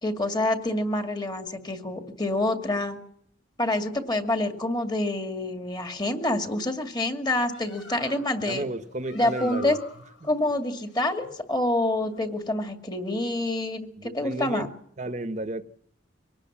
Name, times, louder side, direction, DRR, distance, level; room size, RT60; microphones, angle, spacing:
voice 1, 0.0-3.0 3.6-8.6 9.1-9.8 10.2-14.7, left 1 dB, 20° left, 2.3 m, -27 dB
Bird, 7.2-12.4, left 4 dB, 80° left, 5.0 m, -47 dB
voice 2, 8.5-9.8 10.2-10.3 14.0-14.7 15.0-15.6, right 1 dB, 40° right, 1.1 m, -32 dB
24.5 x 18.5 x 7.4 m
head